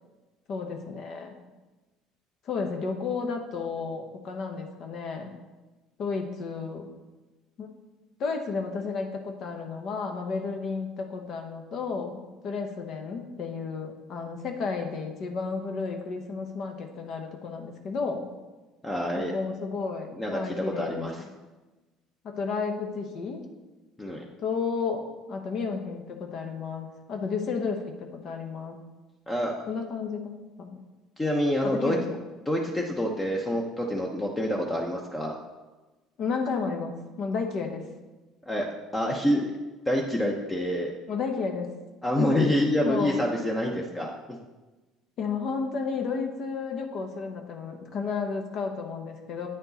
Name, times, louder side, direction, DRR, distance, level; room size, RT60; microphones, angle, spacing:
voice 1, 0.5-1.4 2.4-5.3 6.0-6.9 7.6-7.7 8.2-18.3 19.1-21.3 22.2-23.4 24.4-28.8 29.7-30.8 31.6-32.2 36.2-37.8 41.1-41.7 42.8-43.2 45.2-49.5, left 5 dB, 55° left, 4 dB, 0.9 m, -32 dB
voice 2, 18.8-19.3 20.2-21.1 24.0-24.2 29.3-29.5 31.2-32.0 32.5-35.3 38.5-38.7 38.9-39.5 39.9-40.9 42.0-44.4, left 1 dB, 15° left, 0 dB, 0.8 m, -27 dB
8.8 x 4.4 x 4.0 m, 1.2 s
supercardioid pair, 105°, 0 cm